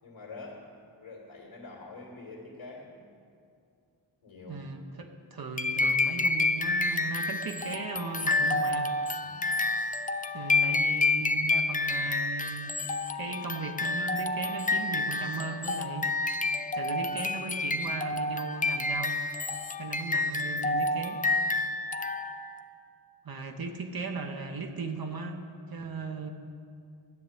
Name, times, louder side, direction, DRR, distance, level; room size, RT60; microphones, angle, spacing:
voice 1, 0.0-3.0 4.2-4.6 9.2-9.6 25.8-25.9, left 3 dB, 85° left, -3 dB, 2.5 m, -46 dB
voice 2, 4.5-8.9 10.3-12.7 13.1-16.1 16.7-19.2 19.7-21.2 23.2-26.3, right 4 dB, 50° right, 4 dB, 1.0 m, -37 dB
sound 1, 5.6-22.6, left 3 dB, 20° left, 0.4 m, -29 dB
13.0 x 7.3 x 9.1 m, 2.4 s
wide cardioid pair, 155°, 47 cm